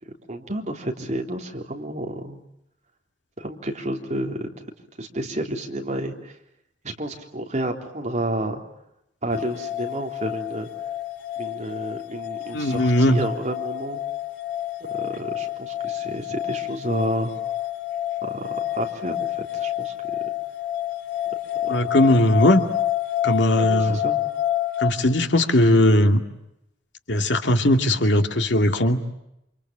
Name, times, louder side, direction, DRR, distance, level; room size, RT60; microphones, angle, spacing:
voice 1, 0.0-2.4 3.4-4.6 5.0-6.3 6.8-8.6 9.2-10.7 11.4-14.0 14.8-17.3 18.2-20.2 21.6-21.8 23.6-24.2, right 1 dB, 40° right, 2 dB, 3.6 m, -30 dB
sound 1, 9.3-24.9, left 13 dB, 90° left, 3.4 m, -28 dB
voice 2, 12.5-13.2 21.7-22.6 23.2-24.0 24.8-26.2 27.1-29.0, left 1 dB, 75° left, 5 dB, 2.4 m, -19 dB
29.0 x 27.0 x 7.6 m, 0.83 s
head